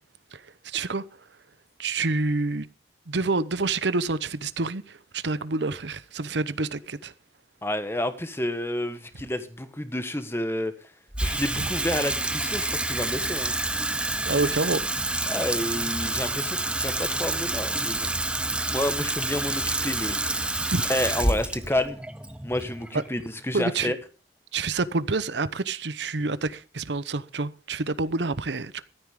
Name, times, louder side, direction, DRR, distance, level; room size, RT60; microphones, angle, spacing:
voice 1, 0.3-1.1 1.8-2.7 3.1-7.1 14.2-14.8 20.7-20.8 22.9-23.0 23.5-23.9 24.5-28.8, right 3 dB, 85° right, 0.9 m, -28 dB
voice 2, 7.6-10.7 11.2-13.5 15.3-18.1 18.7-20.5 20.9-22.0 22.4-24.0, left 1 dB, 15° left, 1.4 m, -30 dB
Water tap faucet / Sink (filling or washing), 11.1-23.5, right 2 dB, 5° right, 0.7 m, -28 dB
14.5 x 13.0 x 3.8 m
head